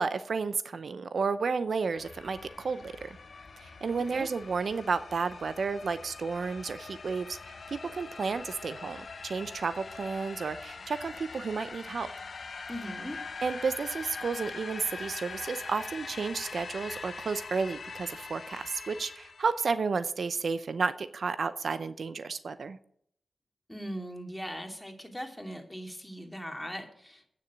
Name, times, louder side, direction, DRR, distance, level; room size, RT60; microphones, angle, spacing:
voice 1, 0.0-3.2 3.6-12.1 13.4-22.8, right 4 dB, 70° right, 13 dB, 0.6 m, -32 dB
sound 1, 2.0-19.7, left 4 dB, 65° left, 1.0 m, -43 dB
voice 2, 12.7-13.2 23.7-27.3, equal, 10° left, 4 dB, 2.6 m, -39 dB
9.3 x 7.0 x 8.4 m, 0.67 s
cardioid pair, 45°, 0 cm